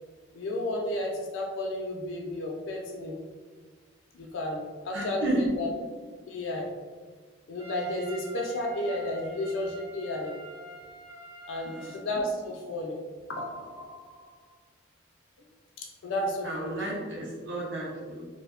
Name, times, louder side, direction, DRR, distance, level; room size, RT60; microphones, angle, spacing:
voice 1, 0.3-3.2 4.1-5.7 6.3-6.7 7.5-10.4 11.5-13.0 13.3-14.3 15.8-16.9, left 1 dB, 85° left, -1 dB, 0.4 m, -33 dB
voice 2, 4.9-5.4 11.6-12.0 16.4-18.2, right 1 dB, 65° right, -4 dB, 0.7 m, -32 dB
Trumpet, 7.6-12.0, equal, 5° right, 0.5 m, -46 dB
2.7 x 2.1 x 2.4 m, 1.4 s
head